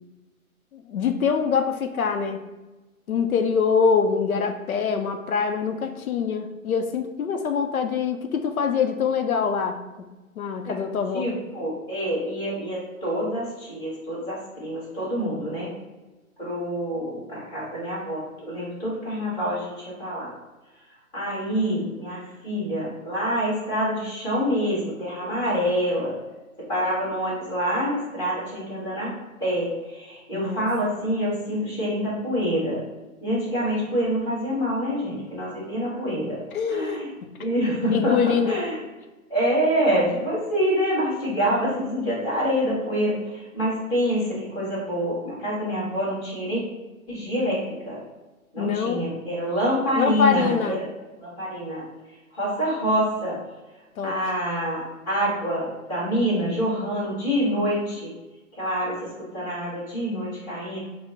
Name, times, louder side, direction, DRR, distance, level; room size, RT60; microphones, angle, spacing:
voice 1, 0.7-2.4 3.1-9.8 10.4-11.3 30.3-30.7 36.5-37.3 37.9-38.6 48.6-49.1 49.9-50.8 54.0-54.2, left 6 dB, 75° left, 6 dB, 0.5 m, -24 dB
voice 2, 11.1-15.7 16.4-20.3 21.1-26.2 26.7-29.1 29.4-32.8 33.2-36.4 36.7-37.1 37.4-38.8 39.3-46.6 47.1-48.0 48.5-50.8 51.2-51.8 52.3-53.4 54.0-58.1 58.6-60.8, equal, 10° left, -9 dB, 1.1 m, -26 dB
4.2 x 2.0 x 3.8 m, 1.1 s
figure-of-eight pair, 135°, 43 cm